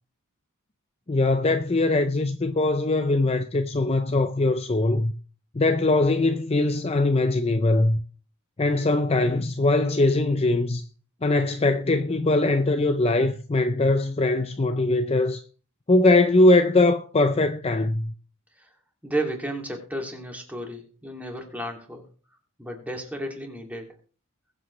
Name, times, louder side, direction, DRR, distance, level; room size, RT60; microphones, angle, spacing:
voice 1, 1.1-5.1 5.5-8.0 8.6-10.8 11.2-15.4 15.9-18.1, left 2 dB, 25° left, 0.6 m, -21 dB
voice 2, 19.0-22.0 22.6-23.9, right 1 dB, 5° right, 2.5 m, -33 dB
21.0 x 7.9 x 3.2 m
head